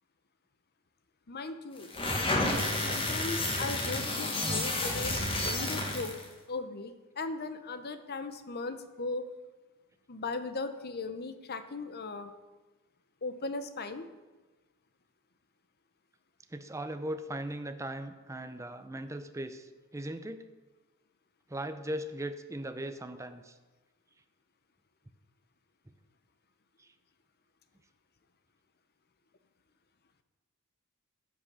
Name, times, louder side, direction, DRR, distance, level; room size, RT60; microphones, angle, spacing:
voice 1, 1.3-1.9 2.7-6.2 6.5-9.3 10.1-12.3 13.2-14.1, left 3 dB, 45° left, 10 dB, 0.9 m, -38 dB
sound 1, 1.8-6.2, left 2 dB, 25° left, 1.8 m, -31 dB
voice 2, 16.5-20.4 21.5-23.6 26.8-26.9, right 1 dB, 15° right, 8 dB, 0.6 m, -38 dB
15.0 x 5.9 x 6.7 m, 1.2 s
head